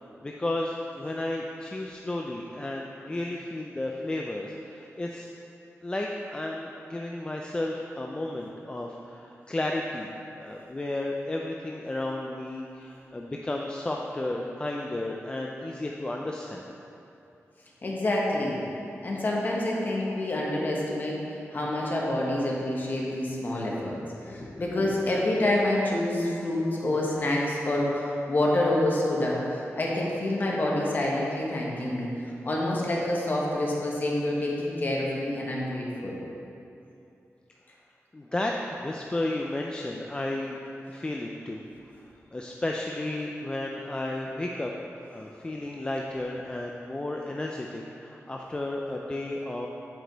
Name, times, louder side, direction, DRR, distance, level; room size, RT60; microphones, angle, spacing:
voice 1, 0.2-5.3 5.8-10.1 10.4-16.6 38.1-40.6 40.9-41.6 42.3-44.7 45.1-49.7, left 1 dB, 20° left, 0 dB, 0.3 m, -33 dB
voice 2, 17.8-18.6 19.0-32.1 32.4-36.2, left 1 dB, 40° left, -3 dB, 1.1 m, -27 dB
7.7 x 5.0 x 4.0 m, 2.8 s
wide cardioid pair, 165°, 5 cm